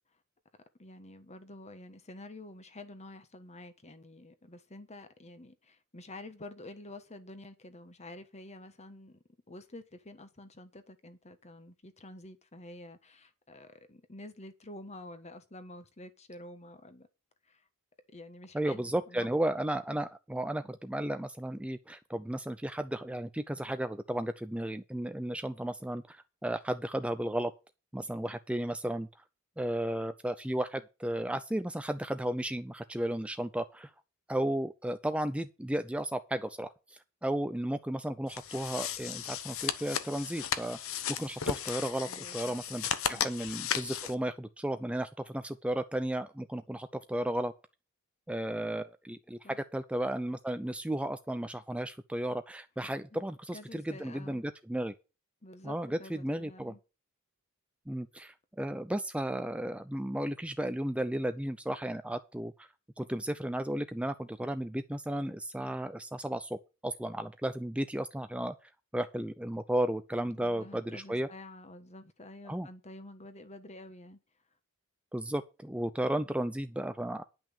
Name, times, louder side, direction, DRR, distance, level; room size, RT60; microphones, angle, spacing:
voice 1, 0.8-17.1 17.4-17.6 18.1-19.3 42.0-42.6 43.1-43.3 49.4-49.6 53.1-53.2 53.5-54.4 55.4-56.8 70.2-74.2, left 1 dB, 30° left, 1.3 m, -49 dB
voice 2, 18.5-27.5 27.9-29.1 29.6-33.9 34.3-40.8 41.2-47.5 48.3-49.4 49.7-54.9 55.6-56.8 57.9-62.7 63.0-66.6 66.8-68.5 68.9-71.3 72.5-72.7 75.1-77.2, right 1 dB, 5° right, 0.5 m, -34 dB
sound 1, 38.3-44.1, left 8 dB, 65° left, 1.0 m, -35 dB
10.5 x 6.0 x 7.2 m
head